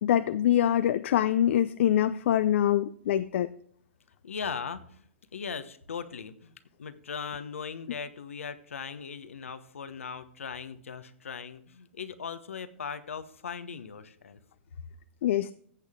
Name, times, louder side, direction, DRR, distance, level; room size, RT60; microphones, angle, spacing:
voice 1, 0.0-3.5 15.2-15.5, left 11 dB, 65° left, 12 dB, 0.5 m, -24 dB
voice 2, 4.2-5.0 5.3-6.5 6.8-14.4, left 6 dB, 90° left, 12 dB, 1.1 m, -39 dB
14.5 x 8.3 x 3.6 m, 0.62 s
hypercardioid pair, 125°, 7 cm